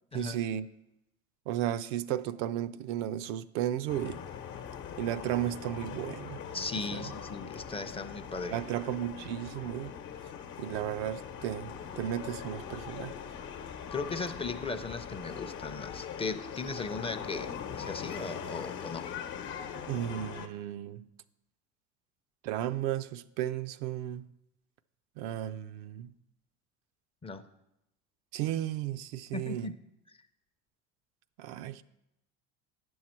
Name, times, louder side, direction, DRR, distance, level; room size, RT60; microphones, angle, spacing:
voice 1, 0.1-0.7 1.5-4.2 5.0-6.4 6.9-7.1 8.5-9.9 10.6-13.2 19.9-21.1 22.4-24.3 25.2-26.1 28.3-29.7 31.4-31.8, right 12 dB, 75° right, 0.5 m, -34 dB
sound 1, 3.9-20.5, left 8 dB, 55° left, 0.9 m, -41 dB
voice 2, 6.5-8.6 13.9-19.1 27.2-27.4 29.3-29.7 30.1-30.2, left 4 dB, 15° left, 0.5 m, -37 dB
9.1 x 6.3 x 4.4 m
hypercardioid pair, 85°, 36 cm